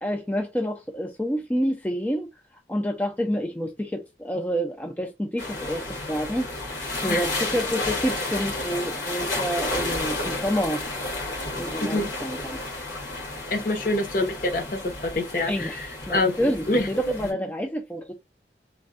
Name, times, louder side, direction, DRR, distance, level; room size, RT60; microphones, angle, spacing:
voice 1, 0.0-2.3 2.7-10.8 11.6-12.6 15.5-18.1, equal, 10° left, 0.3 m, -28 dB
sound 1, 5.4-17.3, left 2 dB, 85° left, 1.6 m, -31 dB
voice 2, 13.5-16.9, left 2 dB, 50° left, 0.8 m, -26 dB
3.3 x 2.1 x 2.4 m
head